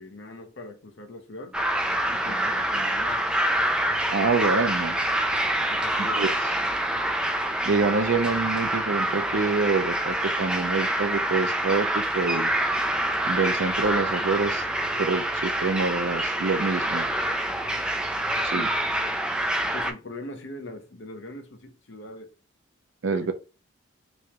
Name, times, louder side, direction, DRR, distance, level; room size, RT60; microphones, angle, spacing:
voice 1, 0.0-1.6 2.1-3.3 5.5-6.2 6.5-6.7 18.5-18.7 19.7-22.3 23.1-23.3, left 2 dB, 65° left, 0.7 m, -41 dB
sound 1, 1.5-19.9, right 1 dB, 5° right, 0.4 m, -26 dB
voice 2, 4.1-5.0 6.0-6.3 7.6-12.5 13.3-14.6 15.0-17.1 18.4-18.7 23.0-23.3, right 4 dB, 70° right, 0.5 m, -26 dB
3.4 x 3.1 x 2.9 m
head